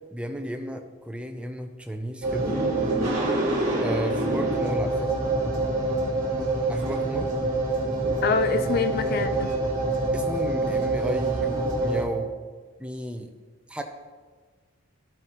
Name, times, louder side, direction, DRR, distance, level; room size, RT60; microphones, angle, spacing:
voice 1, 0.1-2.5 3.8-5.2 6.7-7.3 10.1-12.3 12.8-13.3 13.7-13.8, equal, 5° right, 5 dB, 0.6 m, -33 dB
sound 1, 2.2-12.0, right 2 dB, 35° right, 2.4 m, -26 dB
voice 2, 8.2-9.5, left 4 dB, 45° left, 10 dB, 0.3 m, -25 dB
14.5 x 7.5 x 3.1 m, 1.5 s
head